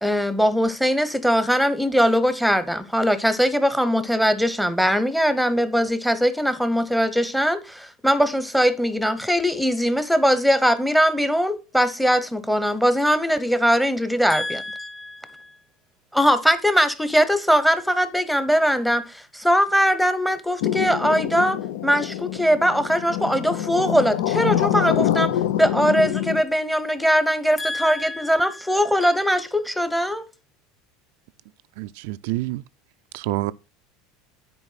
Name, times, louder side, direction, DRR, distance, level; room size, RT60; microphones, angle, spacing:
voice 1, 0.0-14.6 16.1-25.3 25.6-30.2, equal, ahead, 0.9 m, -21 dB
voice 2, 14.3-15.6 27.6-28.9, left 2 dB, 20° left, 0.6 m, -33 dB
sound 1, 20.6-26.4, left 11 dB, 85° left, 0.6 m, -25 dB
voice 3, 31.8-32.6 33.1-33.5, right 18 dB, 75° right, 0.4 m, -27 dB
9.8 x 4.4 x 5.7 m
supercardioid pair, 130°, 0 cm